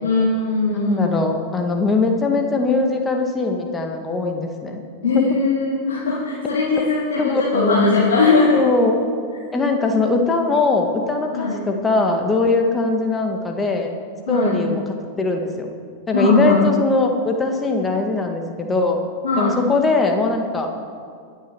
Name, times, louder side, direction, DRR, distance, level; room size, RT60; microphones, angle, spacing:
voice 1, 0.0-1.1 5.0-8.6 11.3-11.6 14.3-14.6 16.1-16.6 19.2-19.6, left 3 dB, 65° left, -8 dB, 3.1 m, -19 dB
voice 2, 0.7-4.8 5.1-5.2 7.2-7.8 8.5-9.0 9.5-13.9 14.3-14.8 15.2-15.7 16.1-19.0 19.4-20.7, left 3 dB, 15° left, 3 dB, 1.9 m, -21 dB
23.5 x 8.5 x 4.7 m, 2.2 s
figure-of-eight pair, 90°, 0 cm